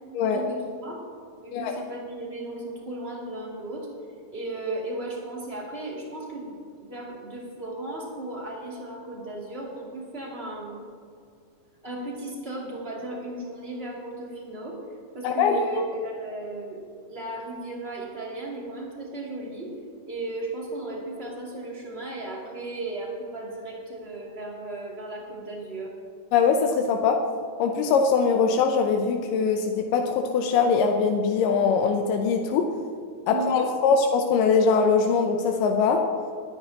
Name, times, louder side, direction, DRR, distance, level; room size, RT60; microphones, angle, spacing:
voice 1, 0.2-1.0 1.4-3.9 4.3-10.8 11.8-14.8 15.1-19.7 20.0-25.9 33.3-33.7, right 2 dB, 20° right, -4 dB, 2.4 m, -35 dB
voice 2, 15.2-15.6 26.3-27.2 27.6-32.7 33.3-36.0, left 5 dB, 90° left, 3 dB, 2.4 m, -22 dB
20.5 x 10.0 x 2.9 m, 2.3 s
omnidirectional pair, 3.7 m